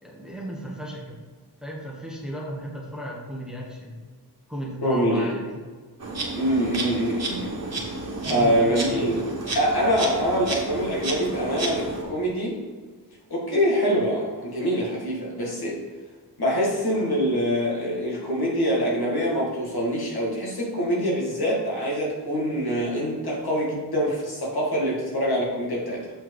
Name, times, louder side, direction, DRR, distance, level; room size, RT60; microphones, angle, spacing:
voice 1, 0.0-1.2 1.6-3.9 4.5-5.6 8.2-9.0, equal, ahead, -4 dB, 1.3 m, -35 dB
voice 2, 4.8-5.4 6.3-7.6 8.2-9.2 9.5-12.6 13.3-15.8 16.4-26.1, equal, 65° left, -3 dB, 2.2 m, -24 dB
Insect, 6.0-12.0, right 2 dB, 40° right, 1.7 m, -31 dB
7.7 x 4.9 x 4.8 m, 1.5 s
wide cardioid pair, 170°, 40 cm